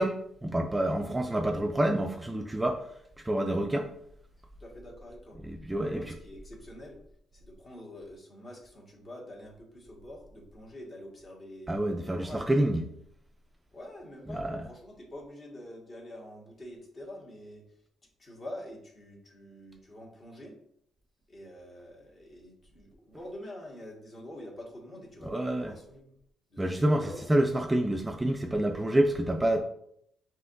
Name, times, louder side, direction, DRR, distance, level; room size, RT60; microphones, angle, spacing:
voice 1, 0.0-2.8 3.2-3.9 5.4-6.1 11.7-12.8 14.3-14.7 25.3-25.7 26.6-29.6, right 1 dB, 15° right, 0.4 m, -28 dB
voice 2, 4.6-5.4 5.8-7.0 7.3-11.7 12.0-12.4 13.7-17.6 18.2-20.5 21.3-26.1 26.5-27.4, left 1 dB, 40° left, 1.6 m, -46 dB
5.5 x 2.9 x 2.6 m
cardioid pair, 90°, 0 cm